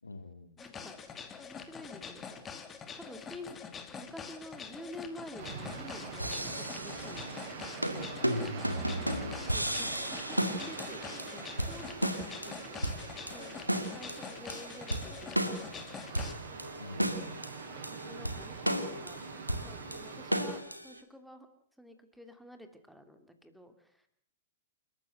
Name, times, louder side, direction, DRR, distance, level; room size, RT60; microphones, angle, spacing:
voice 1, 0.0-0.5 7.9-8.5 8.9-10.1 16.8-17.5, left 3 dB, 80° left, 10 dB, 2.3 m, -47 dB
sound 1, 0.6-16.3, left 6 dB, 20° left, 2.4 m, -45 dB
voice 2, 0.6-2.4 3.0-3.6 4.0-7.5 7.9-8.6 9.5-10.0 10.2-12.8 13.3-15.6 15.9-16.3 18.1-19.2 19.6-21.5 21.8-24.1, equal, ahead, 7 dB, 2.7 m, -49 dB
sound 2, 5.4-20.6, right 5 dB, 45° right, 7.8 m, -45 dB
sound 3, 6.2-7.4 7.8-21.0, right 1 dB, 90° right, 2.3 m, -35 dB
28.5 x 14.0 x 7.8 m, 0.67 s
figure-of-eight pair, 105°, 0 cm